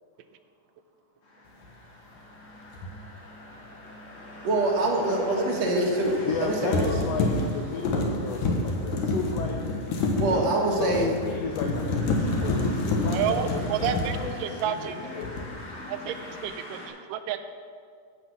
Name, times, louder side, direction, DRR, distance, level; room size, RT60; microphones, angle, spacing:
sound 1, 1.2-16.9, left 1 dB, 50° left, 3.2 m, -42 dB
sound 2, 2.7-2.9 6.1-6.4 6.7-14.9 15.2-15.7, left 2 dB, 70° left, 2.6 m, -28 dB
voice 1, 4.4-6.9 10.2-11.1, right 2 dB, 60° right, 0 dB, 2.2 m, -25 dB
voice 2, 6.3-9.6 10.3-15.6, left 5 dB, 90° left, 2 dB, 1.4 m, -34 dB
voice 3, 13.1-15.0 15.9-17.5, right 9 dB, 85° right, 9 dB, 2.2 m, -30 dB
15.5 x 5.8 x 6.0 m, 2.2 s
omnidirectional pair, 3.9 m